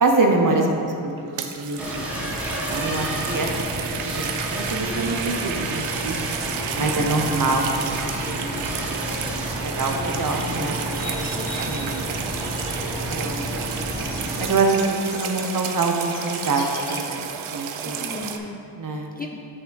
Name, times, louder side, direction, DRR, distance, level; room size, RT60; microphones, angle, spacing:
voice 1, 0.0-2.3 2.7-3.5 4.1-4.2 4.5-6.2 6.7-8.0 8.3-8.5 9.3-11.2 11.6-12.0 13.1-13.6 14.4-17.2 17.5-18.1 18.8-19.1, right 3 dB, 40° right, 2 dB, 0.8 m, -25 dB
sound 1, 1.2-18.4, right 8 dB, 80° right, 0.6 m, -32 dB
sound 2, 1.8-14.5, equal, 5° right, 1.1 m, -30 dB
voice 2, 6.8-7.2 11.4-11.7 17.8-18.6 18.9-19.4, left 2 dB, 20° left, 0 dB, 0.3 m, -37 dB
sound 3, 10.9-17.0, left 4 dB, 55° left, 0.9 m, -40 dB
7.7 x 3.5 x 3.9 m, 2.6 s
cardioid pair, 65°, 49 cm